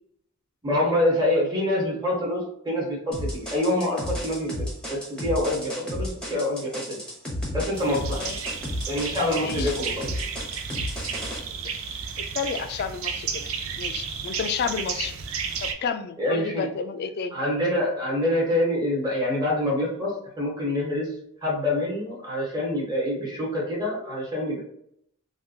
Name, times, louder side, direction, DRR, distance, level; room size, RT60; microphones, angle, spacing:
voice 1, 0.6-7.0 7.5-8.2 8.9-10.2 16.2-16.7 17.3-20.1 20.4-21.1 21.4-24.6, left 1 dB, 20° right, -4 dB, 1.1 m, -26 dB
sound 1, 3.1-11.4, left 1 dB, 5° left, 0.8 m, -32 dB
sound 2, 7.7-15.7, right 6 dB, 80° right, 0.4 m, -33 dB
voice 2, 8.1-8.4 9.4-9.7 11.5-11.7 12.2-15.1 15.6-17.4, left 6 dB, 50° left, 9 dB, 0.3 m, -31 dB
3.5 x 2.3 x 2.7 m, 0.72 s
head